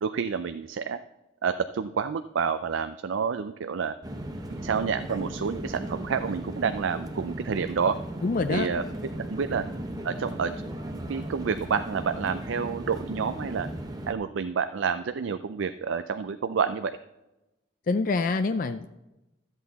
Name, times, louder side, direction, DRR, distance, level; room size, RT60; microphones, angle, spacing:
voice 1, 0.0-1.0 1.4-3.9 4.5-8.0 8.5-8.8 9.2-9.6 10.0-10.5 10.9-13.7 14.1-17.0, right 6 dB, 85° right, 10 dB, 0.4 m, -29 dB
sound 1, 4.0-14.1, right 1 dB, 20° right, 0.8 m, -36 dB
voice 2, 8.2-8.7 17.9-18.9, left 3 dB, 45° left, 10 dB, 0.4 m, -26 dB
13.0 x 8.1 x 4.1 m, 0.99 s
head